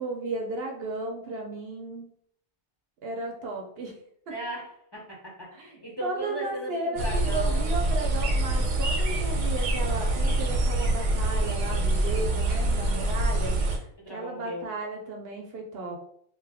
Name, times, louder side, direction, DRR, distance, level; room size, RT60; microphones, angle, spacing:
voice 1, 0.0-2.1 3.0-3.9 5.6-5.7 6.0-13.6 14.1-16.0, right 2 dB, 65° right, 1 dB, 0.7 m, -34 dB
voice 2, 4.3-7.7 12.7-13.1 14.0-14.7, equal, 25° left, -4 dB, 0.6 m, -38 dB
sound 1, 7.0-13.8, right 1 dB, 85° right, 1.0 m, -25 dB
2.6 x 2.3 x 3.4 m, 0.68 s
omnidirectional pair, 1.2 m